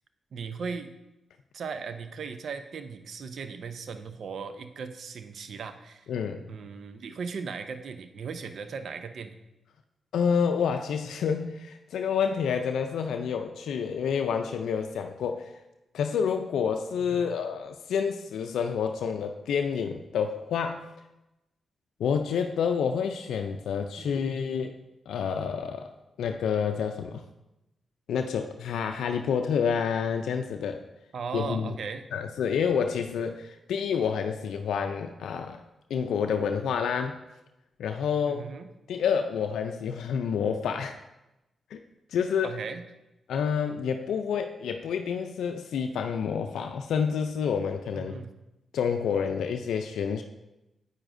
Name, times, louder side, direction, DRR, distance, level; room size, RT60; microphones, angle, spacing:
voice 1, 0.3-0.9 1.5-6.1 6.5-9.3 17.0-17.3 24.0-24.4 31.1-32.1 38.3-38.7 42.4-42.9 47.9-48.3, right 5 dB, 70° right, 9 dB, 0.6 m, -37 dB
voice 2, 6.1-6.5 10.1-15.5 15.9-20.9 22.0-24.8 25.1-25.9 26.2-27.2 28.1-30.8 31.3-31.7 32.1-35.6 35.9-37.2 37.8-38.4 38.9-41.0 41.7-41.8 42.1-42.5 43.3-48.2 48.7-50.2, left 7 dB, 80° left, 6 dB, 0.4 m, -28 dB
8.8 x 8.8 x 2.6 m, 0.94 s
supercardioid pair, 45°, 0 cm